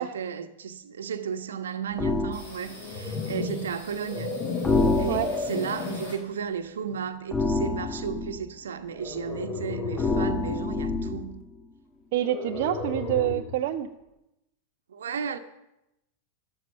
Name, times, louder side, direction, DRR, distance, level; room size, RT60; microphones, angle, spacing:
voice 1, 0.0-4.4 5.0-11.4 14.9-15.4, right 7 dB, 65° right, 1.2 m, -34 dB
sound 1, 2.0-2.4 4.6-5.6 7.3-8.4 10.0-11.3, left 3 dB, 15° left, 1.2 m, -27 dB
sound 2, 2.3-6.7 7.0-8.4 8.7-8.8 9.0-9.7, left 1 dB, 70° left, 6.8 m, -48 dB
sound 3, 2.6-6.3 6.9-7.2 8.9-10.5 12.1-13.6, left 4 dB, 35° left, 2.0 m, -33 dB
voice 2, 12.1-13.9, right 13 dB, 50° right, 0.7 m, -27 dB
13.0 x 13.0 x 6.9 m
figure-of-eight pair, 90°, 0 cm